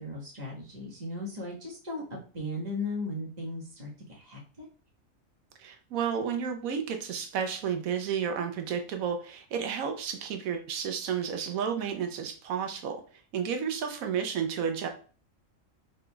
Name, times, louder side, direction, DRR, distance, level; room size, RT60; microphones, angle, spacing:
voice 1, 0.0-4.7, left 2 dB, 30° right, -3 dB, 1.4 m, -37 dB
voice 2, 5.6-13.0 13.3-14.9, right 7 dB, 90° right, 5 dB, 1.1 m, -31 dB
5.0 x 3.8 x 2.2 m, 0.38 s
omnidirectional pair, 1.4 m